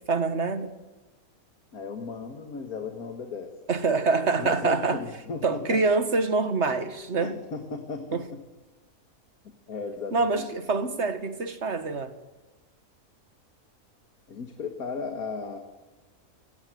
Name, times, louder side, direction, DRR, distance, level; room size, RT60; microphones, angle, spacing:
voice 1, 0.1-0.7 3.7-5.0 5.4-7.3 8.1-8.2 10.1-12.1, right 4 dB, 50° right, 1.9 m, -25 dB
voice 2, 1.7-3.5 4.4-5.8 7.2-8.4 9.7-10.5 14.3-15.6, left 4 dB, 80° left, 2.3 m, -36 dB
30.0 x 18.0 x 7.8 m
omnidirectional pair, 1.5 m